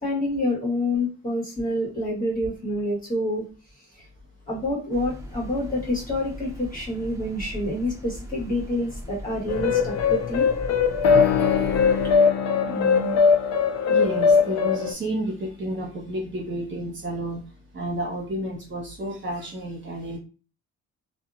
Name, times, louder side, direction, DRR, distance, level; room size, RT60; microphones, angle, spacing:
voice 1, 0.0-3.4 4.0-4.1 4.5-10.5, left 1 dB, 25° left, -6 dB, 1.4 m, -27 dB
sound 1, 4.9-12.2, equal, 10° right, 0.7 m, -39 dB
sound 2, 9.5-14.9, left 6 dB, 60° left, 0.5 m, -20 dB
voice 2, 12.7-13.2 13.5-13.6 13.9-17.4 17.7-20.2, right 1 dB, 40° right, -2 dB, 1.2 m, -31 dB
2.7 x 2.3 x 2.5 m, 0.35 s
cardioid pair, 90°, 30 cm